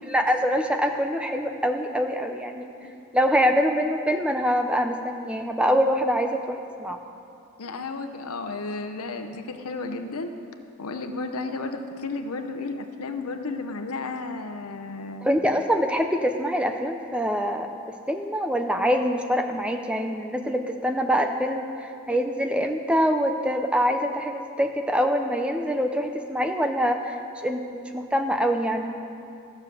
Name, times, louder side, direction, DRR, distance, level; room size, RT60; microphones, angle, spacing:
voice 1, 0.1-2.7 3.1-7.0 15.2-17.7 18.1-28.9, equal, 5° right, 5 dB, 0.5 m, -24 dB
voice 2, 7.6-10.3 10.8-15.3, left 3 dB, 90° left, 6 dB, 0.8 m, -33 dB
14.0 x 6.9 x 6.8 m, 2.6 s
head